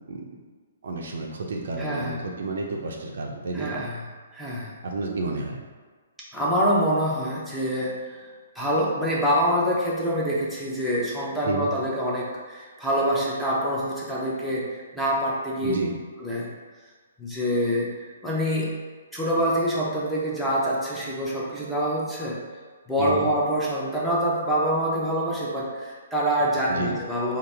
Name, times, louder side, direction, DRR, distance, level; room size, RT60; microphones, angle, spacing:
voice 1, 0.8-3.8 4.8-5.6 11.4-11.7 15.6-15.9 23.0-23.3 26.7-26.9, right 3 dB, 65° right, 0 dB, 0.5 m, -30 dB
voice 2, 1.8-2.2 3.5-4.0 4.3-4.8 6.3-8.3 8.6-15.8 16.2-16.5 17.2-17.9 18.2-18.7 19.1-22.4 22.9-27.4, equal, 5° left, -6 dB, 0.7 m, -25 dB
3.9 x 2.0 x 3.3 m, 1.5 s
figure-of-eight pair, 130°, 0 cm